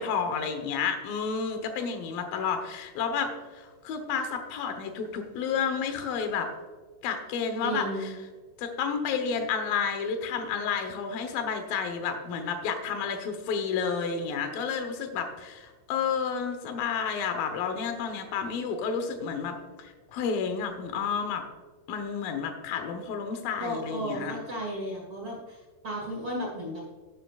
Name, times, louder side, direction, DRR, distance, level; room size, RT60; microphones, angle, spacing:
voice 1, 0.0-6.5 7.0-8.1 8.6-21.4 21.9-24.4, left 6 dB, 85° left, 6 dB, 2.0 m, -31 dB
voice 2, 7.6-8.1 23.6-26.8, right 1 dB, 55° right, -3 dB, 1.4 m, -34 dB
12.0 x 11.0 x 2.4 m, 1.4 s
omnidirectional pair, 5.8 m